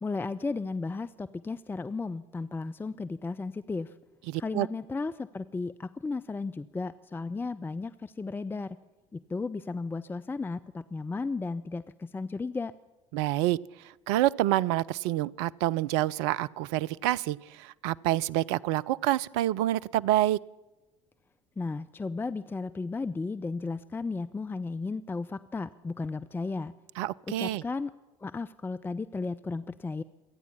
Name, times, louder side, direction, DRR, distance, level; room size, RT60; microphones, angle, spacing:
voice 1, 0.0-3.9 4.4-8.8 9.1-12.7 21.6-26.7 27.4-27.9 28.2-30.0, left 3 dB, 15° left, 13 dB, 0.5 m, -34 dB
voice 2, 4.3-4.7 13.1-13.6 14.1-20.4 27.0-27.6, right 15 dB, 60° right, 18 dB, 0.4 m, -27 dB
27.0 x 9.5 x 5.7 m, 1.1 s
figure-of-eight pair, 60°, 16 cm